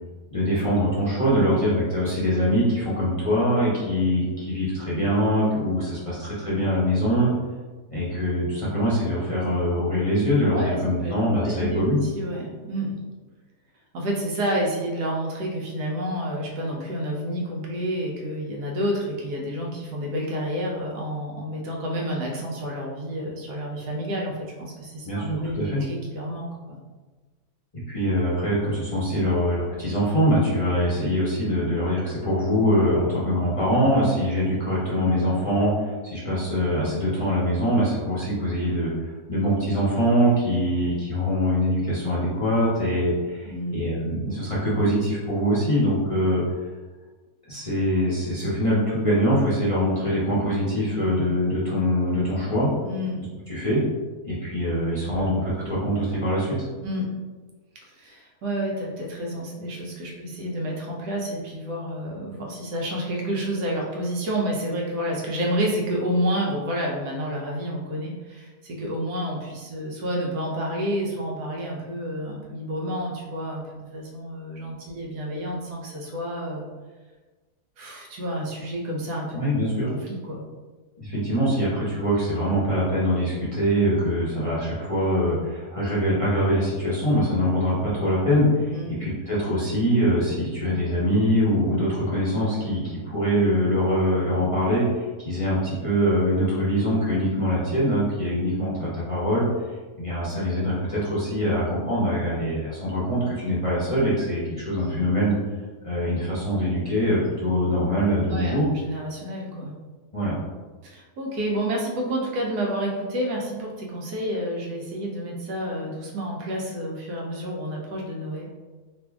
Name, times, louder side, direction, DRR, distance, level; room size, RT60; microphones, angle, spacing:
voice 1, 0.3-7.3 7.9-12.0 25.0-25.8 27.9-46.4 47.5-52.7 53.5-53.8 54.2-56.6 79.3-79.9 81.0-88.7 89.0-99.5 100.0-105.3 105.8-108.7 110.1-110.3, equal, 30° left, -9 dB, 0.7 m, -23 dB
voice 2, 1.4-1.7 10.5-11.1 11.4-13.0 13.9-26.8 43.5-43.8 52.8-53.3 55.1-55.3 55.6-55.8 56.8-57.1 57.8-76.7 77.8-79.4 79.9-80.5 88.7-89.1 104.7-105.1 108.2-109.7 110.8-118.6, equal, 90° right, -2 dB, 1.3 m, -29 dB
2.9 x 2.6 x 3.4 m, 1.3 s
omnidirectional pair, 1.7 m